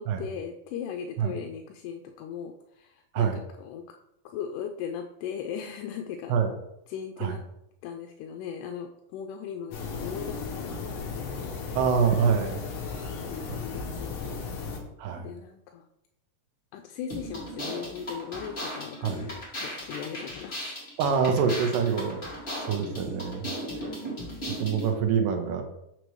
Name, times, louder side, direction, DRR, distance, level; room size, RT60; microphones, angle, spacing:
voice 1, 0.0-3.9 4.3-6.3 6.9-7.4 7.8-10.9 13.0-14.4 15.2-15.9 16.7-20.6 22.3-22.6 22.8-23.1, left 7 dB, 80° left, 4 dB, 2.1 m, -38 dB
sound 1, 9.7-14.8, left 4 dB, 65° left, 1.7 m, -35 dB
voice 2, 11.7-13.0 15.0-15.3 19.0-19.3 21.0-22.2 22.7-23.5 24.6-25.6, right 6 dB, 80° right, 4 dB, 2.5 m, -25 dB
sound 2, 17.1-24.9, equal, 20° left, 1.5 m, -37 dB
6.5 x 6.0 x 3.1 m, 0.82 s
omnidirectional pair, 3.9 m